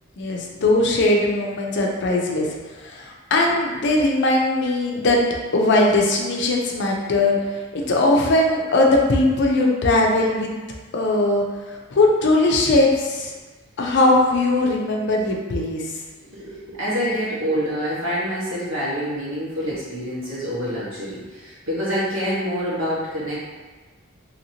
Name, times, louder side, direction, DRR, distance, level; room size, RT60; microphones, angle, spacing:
voice 1, 0.2-2.5 2.8-5.2 5.5-10.5 10.9-13.3 13.8-15.8, left 2 dB, 55° left, 0 dB, 0.5 m, -20 dB
voice 2, 16.2-23.4, equal, 75° right, -9 dB, 1.3 m, -26 dB
2.9 x 2.8 x 2.8 m, 1.3 s
head